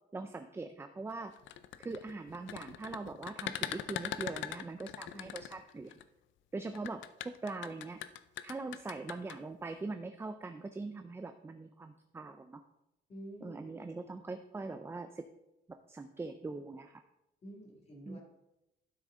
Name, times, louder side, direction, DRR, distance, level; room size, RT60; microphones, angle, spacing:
voice 1, 0.1-1.3 1.8-5.9 6.5-8.0 8.4-12.6 13.4-15.2 15.9-17.0 18.1-18.2, right 3 dB, 15° right, 8 dB, 0.4 m, -42 dB
sound 1, 1.4-6.0 6.7-9.3, left 12 dB, 85° left, 0.5 m, -41 dB
voice 2, 13.1-13.7 14.0-14.1 17.4-18.2, equal, 35° left, -1 dB, 2.2 m, -49 dB
12.0 x 6.3 x 3.7 m, 0.89 s
cardioid pair, 150°, 19 cm